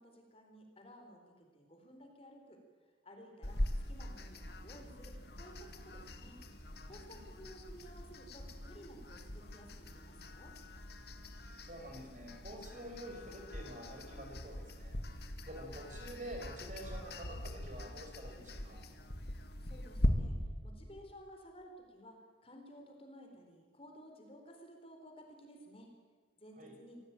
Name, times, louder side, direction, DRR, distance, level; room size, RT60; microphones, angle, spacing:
voice 1, 0.0-2.6 3.0-3.6 3.9-6.4 6.8-10.5 19.6-20.4 20.6-25.9 26.4-27.0, equal, 30° left, 3 dB, 4.2 m, -55 dB
sound 1, 3.4-20.1, left 1 dB, 55° left, 2.1 m, -42 dB
voice 2, 6.8-7.3 11.6-15.0 15.4-18.9 26.6-26.8, right 1 dB, 40° right, 2 dB, 5.4 m, -48 dB
25.0 x 17.0 x 9.0 m, 1.5 s
head